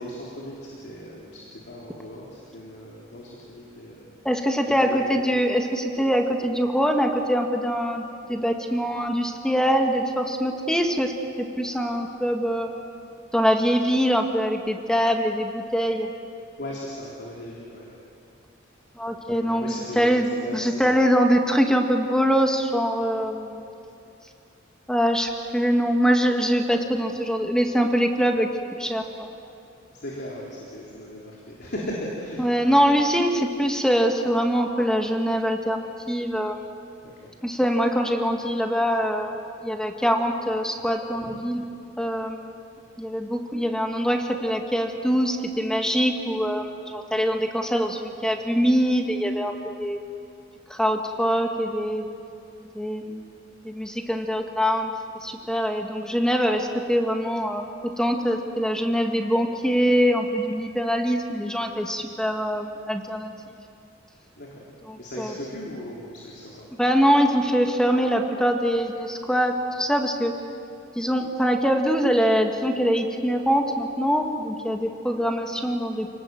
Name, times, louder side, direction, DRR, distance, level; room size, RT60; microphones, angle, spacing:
voice 1, 0.0-4.1 4.7-5.2 16.6-17.9 19.4-21.0 29.9-32.8 37.0-37.3 41.2-41.3 64.4-64.7 65.0-66.7, left 1 dB, 55° left, -4 dB, 3.9 m, -37 dB
voice 2, 4.3-12.7 13.3-16.1 19.0-23.6 24.9-28.5 28.8-29.3 32.4-36.6 37.4-41.6 42.0-42.6 43.0-50.0 50.7-52.1 52.7-53.2 53.6-54.9 55.2-63.3 64.9-65.3 66.8-70.4 71.0-76.1, equal, 5° left, 3 dB, 1.9 m, -23 dB
29.0 x 19.5 x 7.8 m, 2.6 s
head